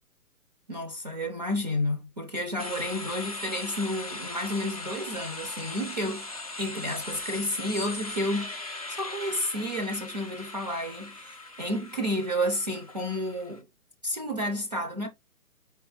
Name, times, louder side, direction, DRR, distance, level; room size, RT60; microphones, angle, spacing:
voice 1, 0.7-6.3 6.6-13.6 14.0-15.1, equal, 30° right, 0.5 m, -31 dB
sound 1, 2.6-13.6, left 2 dB, 25° left, 0.4 m, -39 dB
4.5 x 2.9 x 3.8 m
figure-of-eight pair, 140°, 46 cm